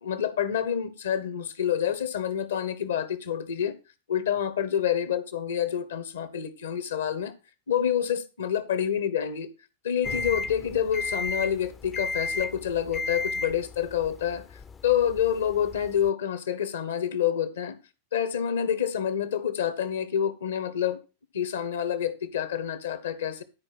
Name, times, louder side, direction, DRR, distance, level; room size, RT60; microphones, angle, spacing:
voice 1, 0.0-3.7 4.1-7.3 7.7-9.5 9.8-17.8 18.1-21.0 21.3-23.4, left 9 dB, 65° left, 1.4 m, -28 dB
sound 1, 10.0-16.1, left 3 dB, 20° left, 0.6 m, -34 dB
12.0 x 5.0 x 6.1 m
figure-of-eight pair, 90°, 0 cm